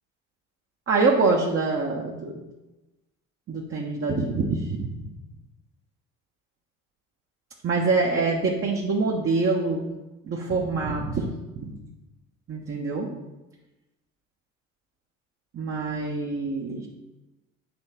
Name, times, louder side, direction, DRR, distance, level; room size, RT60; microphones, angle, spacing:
voice 1, 0.9-2.4 3.5-4.9 7.6-9.9 10.2-11.3 11.5-11.7 12.5-13.1 15.5-16.9, right 3 dB, 35° right, -2 dB, 1.0 m, -25 dB
8.9 x 3.2 x 4.4 m, 1.0 s
hypercardioid pair, 65°, 40 cm